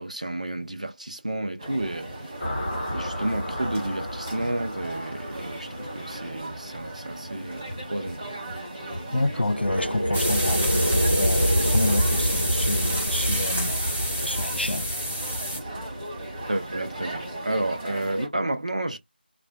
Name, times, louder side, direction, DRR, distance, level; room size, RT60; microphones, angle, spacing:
voice 1, 0.0-2.1 2.9-8.4 12.8-12.9 16.5-19.0, right 1 dB, 45° right, 0.7 m, -31 dB
sound 1, 1.6-18.3, right 1 dB, 15° right, 1.6 m, -37 dB
sound 2, 2.4-6.3 9.3-16.5, equal, 30° left, 1.3 m, -28 dB
voice 2, 9.1-10.6 11.2-13.7 14.2-14.9, left 2 dB, 90° left, 0.4 m, -28 dB
sound 3, 10.1-15.6, equal, 5° left, 0.3 m, -29 dB
3.3 x 2.5 x 2.2 m
figure-of-eight pair, 170°, 6 cm